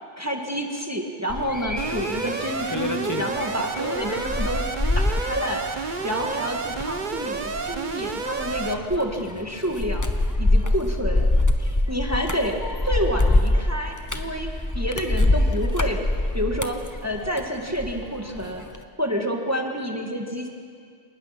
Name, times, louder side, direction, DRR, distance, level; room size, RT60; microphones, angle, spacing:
voice 1, 0.2-4.6 4.9-10.1 10.4-11.3 11.6-14.5 14.7-16.0 16.3-16.8 17.0-18.6 19.0-20.5, equal, 15° right, 2 dB, 1.7 m, -28 dB
sound 1, 1.3-18.0 18.3-18.8, left 2 dB, 15° left, 0.9 m, -25 dB
Alarm, 1.8-8.7, right 4 dB, 40° right, 1.1 m, -30 dB
27.0 x 19.5 x 5.9 m, 2.2 s
omnidirectional pair, 1.3 m